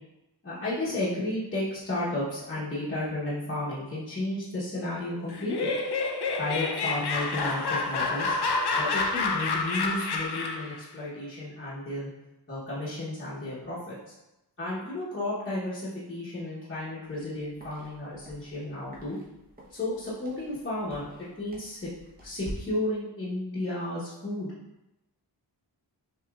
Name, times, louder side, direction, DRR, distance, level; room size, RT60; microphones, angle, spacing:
voice 1, 0.4-5.7 6.4-8.4 8.8-12.1 12.5-14.1 14.6-19.2 19.7-21.1 21.4-21.9 22.2-24.5, left 1 dB, 25° left, -10 dB, 1.0 m, -33 dB
Laughter, 5.3-10.8, left 3 dB, 65° left, 0.6 m, -28 dB
sound 1, 17.0-22.5, equal, 20° right, 0.9 m, -49 dB
6.1 x 3.0 x 2.4 m, 0.96 s
wide cardioid pair, 160°, 43 cm